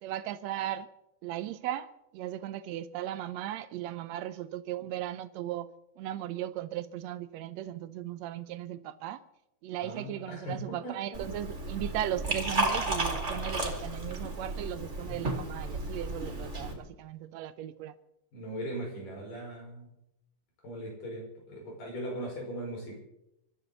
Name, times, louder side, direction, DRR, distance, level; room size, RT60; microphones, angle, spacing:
voice 1, 0.0-0.9 1.2-5.7 6.0-9.2 9.6-17.9, right 12 dB, 80° right, 1.6 m, -37 dB
voice 2, 9.8-11.3 18.3-19.9 20.6-22.9, right 1 dB, 85° left, 6.9 m, -39 dB
Liquid, 11.1-16.7, right 2 dB, 20° right, 2.9 m, -33 dB
25.0 x 13.0 x 4.0 m
omnidirectional pair, 3.7 m